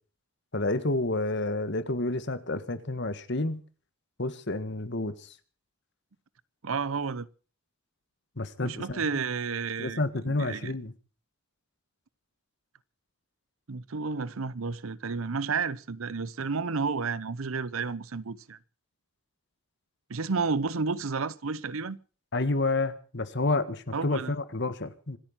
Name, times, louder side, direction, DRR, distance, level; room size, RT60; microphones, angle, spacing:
voice 1, 0.5-3.6 4.2-5.3 8.4-9.0 9.8-10.9 22.3-25.2, left 2 dB, 55° left, 1.6 m, -29 dB
voice 2, 6.6-7.3 8.6-10.7 13.7-18.6 20.1-22.0 23.9-24.3, right 4 dB, 80° right, 0.8 m, -31 dB
26.0 x 9.0 x 5.7 m
head